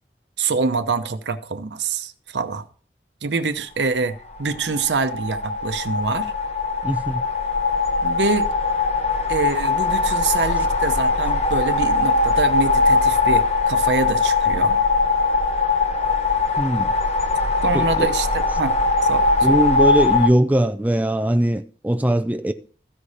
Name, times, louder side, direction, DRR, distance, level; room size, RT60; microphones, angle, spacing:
voice 1, 0.4-2.7 3.2-6.3 8.0-8.5 9.3-14.8 17.6-19.3, right 4 dB, 85° right, 0.8 m, -25 dB
sound 1, 4.4-20.3, left 3 dB, 35° left, 0.8 m, -20 dB
voice 2, 6.8-7.2 10.6-10.7 16.6-16.9 17.7-18.1 18.5-18.6 19.4-22.5, right 1 dB, 10° right, 0.4 m, -21 dB
14.5 x 4.9 x 4.1 m
head